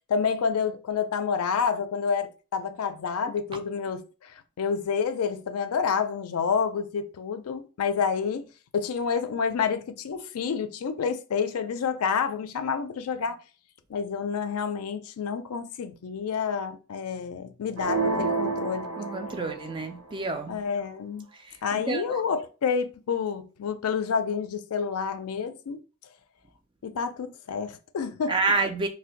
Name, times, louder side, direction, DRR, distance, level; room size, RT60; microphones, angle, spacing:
voice 1, 0.1-8.5 8.7-13.4 13.9-18.9 20.5-21.3 21.6-25.8 26.8-28.4, left 6 dB, 85° left, 0.4 m, -29 dB
sound 1, 17.8-19.8, right 3 dB, 80° right, 0.6 m, -29 dB
voice 2, 19.0-20.6 21.5-21.6 21.9-22.2 28.3-28.9, right 4 dB, 20° right, 0.3 m, -28 dB
2.5 x 2.2 x 3.8 m
head